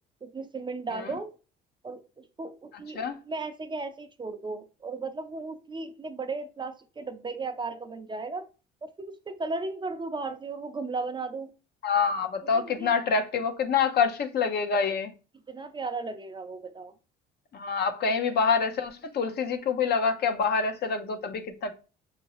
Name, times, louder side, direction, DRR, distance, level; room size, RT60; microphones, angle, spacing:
voice 1, 0.2-1.3 1.8-8.5 8.8-11.5 12.4-12.9 15.5-16.9, right 3 dB, 25° right, 0.5 m, -36 dB
voice 2, 11.8-15.1 17.5-21.7, left 5 dB, 50° left, 0.8 m, -26 dB
6.1 x 2.7 x 3.0 m
supercardioid pair, 90°, 21 cm